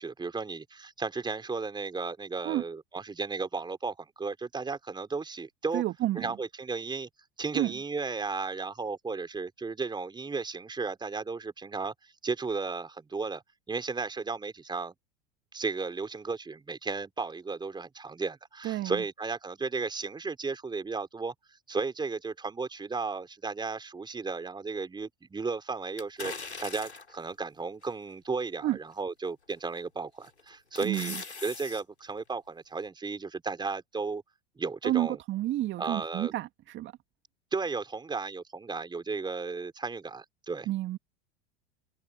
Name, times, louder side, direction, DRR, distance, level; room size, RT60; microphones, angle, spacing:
voice 1, 0.0-5.8 6.1-7.1 7.4-13.4 13.7-14.9 15.5-21.3 21.7-26.3 26.6-34.2 34.6-35.2 35.8-36.3 37.5-40.7, right 4 dB, 15° right, 4.3 m, -34 dB
voice 2, 5.7-6.3 7.5-7.7 18.6-19.0 28.6-28.8 30.8-31.2 34.8-36.9 40.7-41.0, right 14 dB, 35° right, 2.2 m, -30 dB
sound 1, 26.0-27.2 27.8-27.9 29.5-29.8 30.3-31.8 32.2-32.3, left 4 dB, 85° left, 4.1 m, -40 dB
figure-of-eight pair, 85°, 32 cm